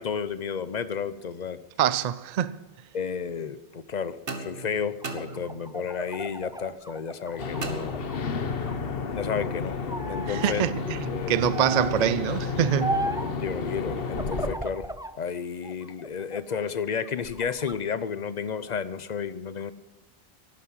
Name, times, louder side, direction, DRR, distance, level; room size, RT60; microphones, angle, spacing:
voice 1, 0.0-1.6 2.9-8.0 9.1-9.8 10.1-10.6 11.1-11.5 13.4-14.9 15.2-19.7, left 6 dB, 50° left, 0.8 m, -32 dB
voice 2, 1.8-2.6 10.3-13.0, right 9 dB, 50° right, 0.5 m, -25 dB
sound 1, 4.3-5.9 7.6-8.6, right 3 dB, 70° right, 1.6 m, -38 dB
sound 2, 5.0-8.2 8.6-9.5 9.9-10.5 11.5-12.0 12.8-13.4 14.1-15.2 15.6-16.6 17.1-17.8, right 1 dB, 5° right, 0.4 m, -35 dB
sound 3, 7.4-14.5, left 5 dB, 70° left, 1.2 m, -31 dB
12.0 x 9.7 x 8.8 m
omnidirectional pair, 1.0 m